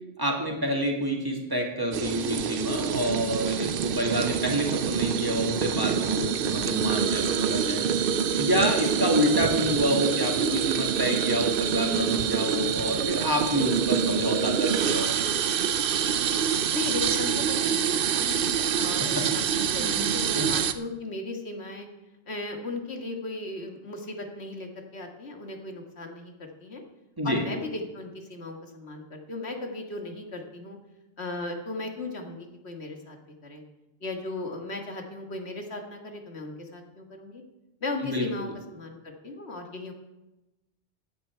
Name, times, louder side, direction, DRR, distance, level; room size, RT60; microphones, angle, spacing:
voice 1, 0.2-7.9 8.4-15.2 19.0-19.2 19.6-20.5 27.2-27.4 38.0-38.2, equal, 20° right, 0 dB, 2.1 m, -28 dB
sound 1, 1.9-20.7, right 7 dB, 60° right, 0.7 m, -26 dB
voice 2, 16.7-21.9 22.3-26.8 27.2-30.8 31.2-33.2 33.4-33.6 34.0-37.4 37.8-39.9, left 2 dB, 70° left, 3 dB, 2.0 m, -36 dB
15.0 x 10.0 x 4.5 m, 1.0 s
omnidirectional pair, 1.1 m